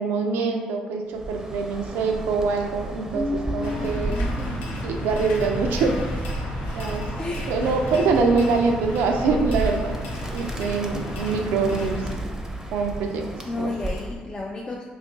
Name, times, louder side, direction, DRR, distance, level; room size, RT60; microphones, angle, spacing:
voice 1, 0.0-4.1 4.8-6.0 6.8-7.1 7.5-10.0 10.3-12.1 12.7-13.2 13.5-13.7, right 4 dB, 75° right, 3 dB, 0.3 m, -24 dB
Bird, 1.1-14.2, right 2 dB, 15° right, 0.5 m, -33 dB
voice 2, 3.1-4.7 7.2-7.6 13.4-14.8, left 2 dB, 30° left, -1 dB, 0.4 m, -31 dB
sound 1, 3.6-12.2, left 1 dB, 80° left, 0.6 m, -33 dB
2.8 x 2.4 x 3.6 m, 1.2 s
supercardioid pair, 55°, 3 cm